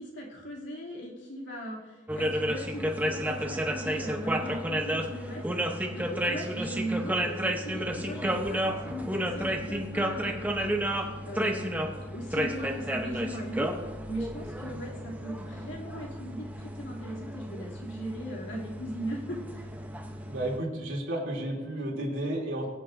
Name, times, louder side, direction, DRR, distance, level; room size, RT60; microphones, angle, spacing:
voice 1, 0.0-5.6 5.9-13.7 14.1-19.7, equal, 75° left, -3 dB, 2.6 m, -38 dB
sound 1, 2.1-20.6, equal, 10° right, 0.7 m, -32 dB
voice 2, 20.3-22.7, right 1 dB, 90° right, -2 dB, 2.8 m, -32 dB
22.0 x 8.5 x 2.6 m, 1.3 s
head